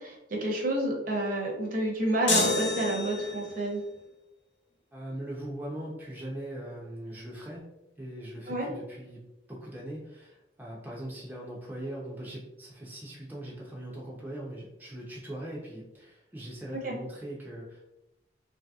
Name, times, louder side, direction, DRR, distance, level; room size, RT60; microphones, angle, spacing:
voice 1, 0.0-3.8 8.5-8.7 16.8-17.0, right 1 dB, 50° right, -1 dB, 0.7 m, -29 dB
sound 1, 2.3-3.6, left 3 dB, 70° left, 0.7 m, -28 dB
voice 2, 4.9-7.7 8.0-9.2 9.5-17.8, right 1 dB, 10° right, -5 dB, 0.4 m, -40 dB
2.9 x 2.7 x 2.3 m, 0.93 s
head